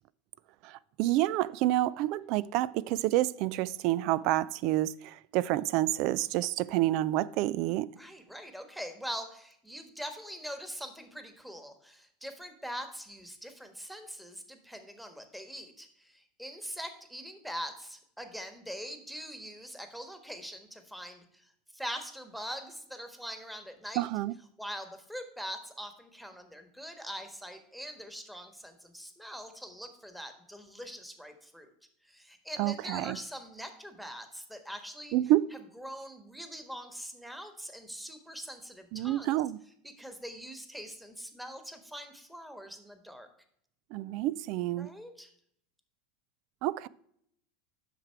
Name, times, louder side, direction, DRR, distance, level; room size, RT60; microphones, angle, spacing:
voice 1, 0.6-7.9 24.0-24.3 32.6-33.2 35.1-35.5 38.9-39.6 43.9-44.9 46.6-46.9, right 15 dB, 60° right, 0.3 m, -28 dB
voice 2, 8.0-21.5 21.7-24.1 24.6-31.7 32.0-35.1 35.8-39.3 39.8-43.3 44.8-45.3, equal, ahead, 1.4 m, -43 dB
8.0 x 6.0 x 4.6 m
hypercardioid pair, 90°, 0 cm